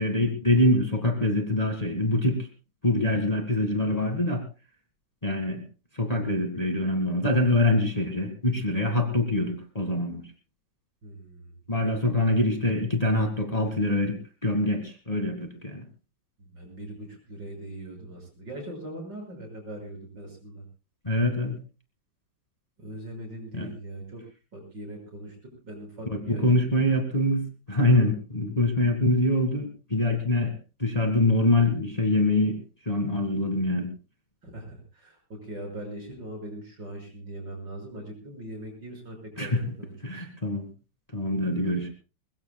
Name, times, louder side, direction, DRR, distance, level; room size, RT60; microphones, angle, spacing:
voice 1, 0.0-2.5 2.8-4.4 5.2-5.6 5.9-10.2 11.7-14.2 14.4-15.8 21.0-21.6 23.5-23.7 26.1-30.5 30.8-32.6 32.9-33.9 39.4-39.6 40.0-40.7 41.1-41.9, left 1 dB, 20° left, 4 dB, 2.0 m, -24 dB
voice 2, 11.0-11.5 11.8-12.1 16.4-20.6 22.8-24.2 24.5-26.5 26.7-26.9 34.4-40.2 41.4-41.9, right 1 dB, 70° right, 2 dB, 6.8 m, -41 dB
22.5 x 21.0 x 2.3 m, 0.33 s
omnidirectional pair, 2.0 m